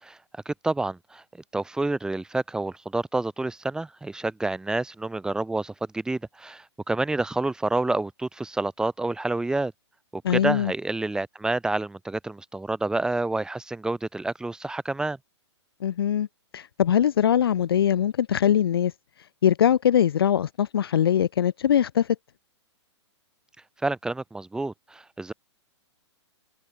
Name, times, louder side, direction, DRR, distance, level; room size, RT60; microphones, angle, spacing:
voice 1, 0.5-1.2 1.5-9.7 10.1-15.2 23.8-25.3, right 2 dB, 5° right, 5.2 m, -28 dB
voice 2, 10.2-10.7 15.8-16.3 16.5-18.9 19.4-22.1, left 9 dB, 55° left, 0.5 m, -22 dB
figure-of-eight pair, 115°, 15 cm